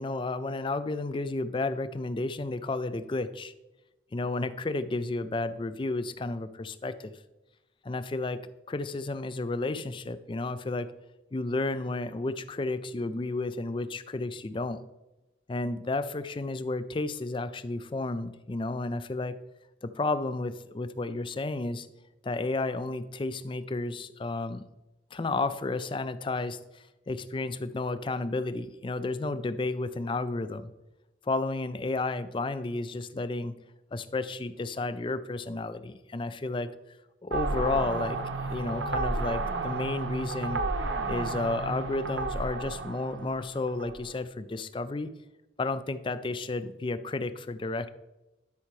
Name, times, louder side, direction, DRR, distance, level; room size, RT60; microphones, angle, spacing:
voice 1, 0.0-3.5 4.1-7.1 7.8-8.4 8.7-10.9 11.3-14.8 15.5-19.4 19.8-21.9 22.2-24.6 25.1-30.7 31.2-33.5 33.9-36.7 37.2-38.2 38.5-40.6 41.1-45.1 45.6-47.9, left 2 dB, 25° left, 13 dB, 0.4 m, -32 dB
sound 1, 37.3-44.0, right 3 dB, 85° right, 0.7 m, -32 dB
12.0 x 5.6 x 3.1 m, 1.0 s
head